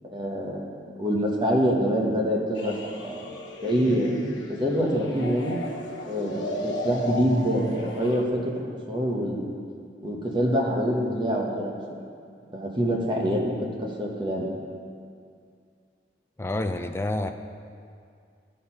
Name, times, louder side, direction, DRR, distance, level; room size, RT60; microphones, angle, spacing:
voice 1, 0.0-3.2 3.6-4.1 4.5-5.6 6.1-8.5 8.9-9.5 10.0-11.8 12.5-13.5 13.8-14.5, equal, 25° right, -1 dB, 1.1 m, -25 dB
sound 1, 2.5-8.2, left 1 dB, 80° left, 1.0 m, -35 dB
voice 2, 16.4-17.3, left 1 dB, 15° left, 7 dB, 0.3 m, -28 dB
13.0 x 4.4 x 5.7 m, 2.3 s
head